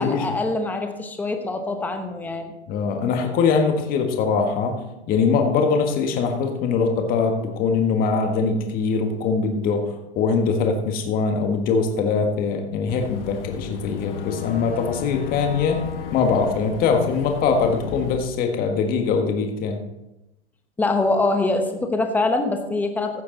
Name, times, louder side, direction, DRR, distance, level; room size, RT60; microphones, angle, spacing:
voice 1, 0.0-2.5 20.8-23.2, left 2 dB, 5° left, 5 dB, 0.9 m, -24 dB
voice 2, 2.7-4.8 5.1-15.8 16.1-19.8, left 5 dB, 25° left, 4 dB, 1.5 m, -22 dB
Boat Water vehicle / Engine, 12.9-18.2, left 9 dB, 55° left, 1.2 m, -34 dB
15.5 x 6.7 x 3.9 m, 0.94 s
hypercardioid pair, 140°, 33 cm